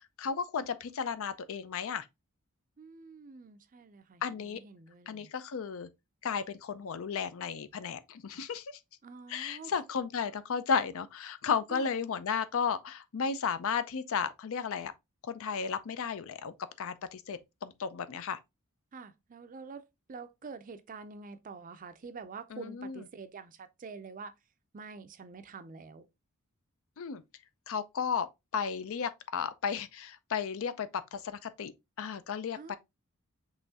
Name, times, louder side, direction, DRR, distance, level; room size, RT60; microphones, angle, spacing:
voice 1, 0.0-2.1 4.2-4.6 5.1-5.9 6.2-8.8 9.3-14.9 15.2-18.4 22.5-23.0 27.0-27.2 27.7-28.3 28.5-32.8, left 6 dB, 65° left, 0.5 m, -34 dB
voice 2, 2.8-5.3 9.0-9.7 11.7-11.9 18.9-24.3 24.7-26.1 32.6-32.8, right 4 dB, 35° right, 0.4 m, -47 dB
5.5 x 3.1 x 2.8 m
head